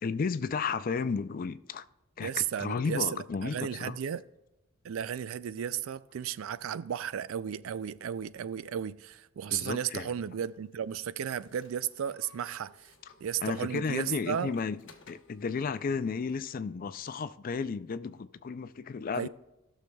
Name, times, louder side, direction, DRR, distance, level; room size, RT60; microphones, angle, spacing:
voice 1, 0.0-1.8 2.2-4.0 9.5-10.1 13.4-14.8 15.1-19.3, left 5 dB, 45° left, 0.4 m, -33 dB
voice 2, 2.2-4.2 4.8-12.9 13.2-14.5 19.1-19.3, right 9 dB, 90° right, 0.4 m, -34 dB
sound 1, 10.2-16.6, left 4 dB, 65° left, 1.0 m, -60 dB
17.0 x 6.5 x 2.3 m
head